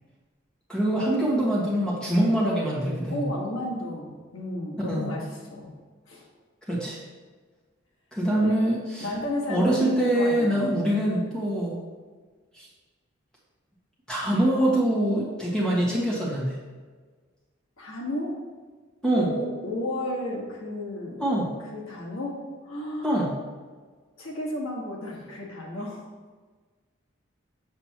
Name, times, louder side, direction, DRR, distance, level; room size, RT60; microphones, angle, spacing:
voice 1, 0.7-3.3 4.9-5.1 6.7-7.0 8.1-9.1 9.5-11.8 12.5-12.7 14.1-16.6 19.0-19.3 21.2-21.5 23.0-23.3, right 1 dB, 5° left, -6 dB, 1.6 m, -24 dB
voice 2, 3.1-5.7 6.1-6.3 8.3-8.6 9.0-10.6 17.8-18.3 19.1-21.5 21.7-22.4 22.6-23.3 24.2-26.0, left 1 dB, 90° left, -2 dB, 1.6 m, -32 dB
7.4 x 6.6 x 3.0 m, 1.4 s
head